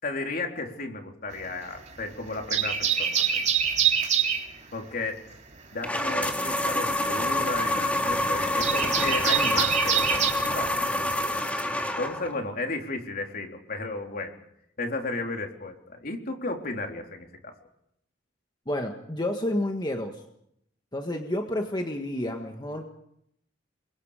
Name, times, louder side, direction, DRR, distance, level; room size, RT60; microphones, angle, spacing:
voice 1, 0.0-3.4 4.7-5.2 5.7-10.8 12.0-14.4 14.8-17.5, left 2 dB, 50° left, 3 dB, 3.7 m, -34 dB
sound 1, 1.3-2.0 2.3-4.5 6.1-10.3, right 8 dB, 40° right, 3.5 m, -25 dB
sound 2, 5.8-12.4, left 1 dB, 10° left, 2.6 m, -27 dB
voice 2, 18.7-20.2 20.9-22.9, left 1 dB, 25° left, 3 dB, 1.7 m, -30 dB
29.0 x 23.5 x 5.1 m, 0.74 s
head